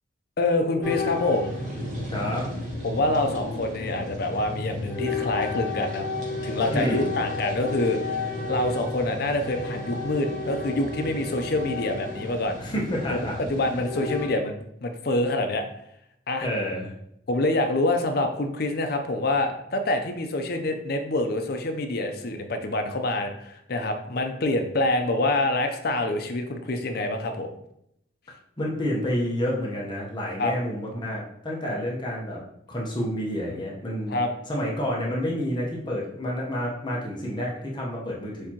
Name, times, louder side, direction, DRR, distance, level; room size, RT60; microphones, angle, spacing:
voice 1, 0.4-1.6 2.8-6.0 6.4-8.2 8.5-12.6 13.1-15.6 16.3-16.5 17.3-27.5 30.4-30.5 34.1-34.3, left 2 dB, 55° left, 6 dB, 0.5 m, -26 dB
sound 1, 0.8-14.3, left 3 dB, 40° right, 1.3 m, -32 dB
voice 2, 2.1-2.5 6.7-7.1 12.6-13.4 16.4-16.9 28.6-32.4 32.7-38.5, equal, 25° left, -3 dB, 0.9 m, -29 dB
6.5 x 2.8 x 2.9 m, 0.76 s
head